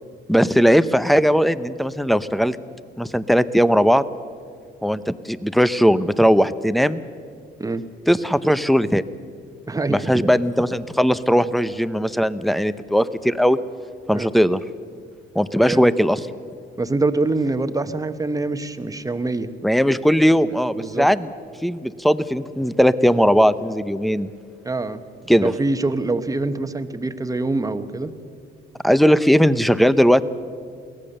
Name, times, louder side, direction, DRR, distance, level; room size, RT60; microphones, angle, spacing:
voice 1, 0.3-2.6 3.0-4.0 4.8-7.0 8.1-9.0 9.9-13.6 14.1-14.6 15.3-16.2 19.6-21.3 21.6-24.3 25.3-25.5 28.8-30.2, equal, ahead, 15 dB, 0.7 m, -18 dB
voice 2, 9.7-10.3 14.1-14.3 15.5-15.9 16.8-19.5 20.8-21.1 24.6-25.0 25.4-28.1, right 2 dB, 15° right, 10 dB, 1.1 m, -24 dB
23.0 x 17.0 x 6.7 m, 2.1 s
cardioid pair, 90°, 20 cm